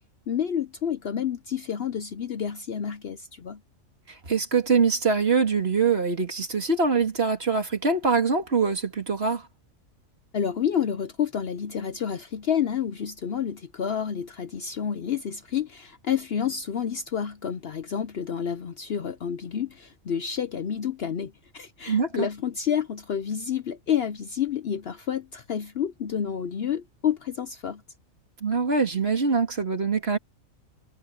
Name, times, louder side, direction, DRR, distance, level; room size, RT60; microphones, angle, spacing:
voice 1, 0.3-3.6 10.3-27.8, left 8 dB, 55° left, 0.8 m, -29 dB
voice 2, 4.1-9.5 21.9-22.3 28.4-30.2, right 5 dB, 45° right, 2.6 m, -24 dB
omnidirectional pair, 1.4 m